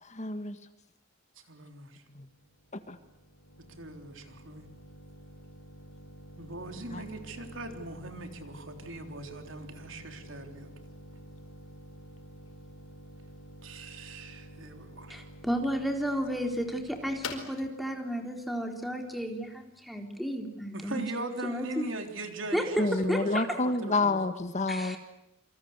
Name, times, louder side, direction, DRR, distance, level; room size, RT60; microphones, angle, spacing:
voice 1, 0.0-0.6 2.1-2.2 6.9-7.1 22.8-25.0, left 2 dB, 35° left, 1.7 m, -29 dB
voice 2, 1.4-2.0 3.6-4.7 6.4-10.7 13.6-15.2 20.7-24.2, right 2 dB, 70° right, 3.7 m, -40 dB
sound 1, 2.1-19.8, left 2 dB, 80° left, 5.0 m, -48 dB
voice 3, 15.1-21.7 22.5-22.6 23.1-23.6 24.7-25.0, equal, ahead, 4.0 m, -33 dB
28.0 x 25.5 x 8.2 m
head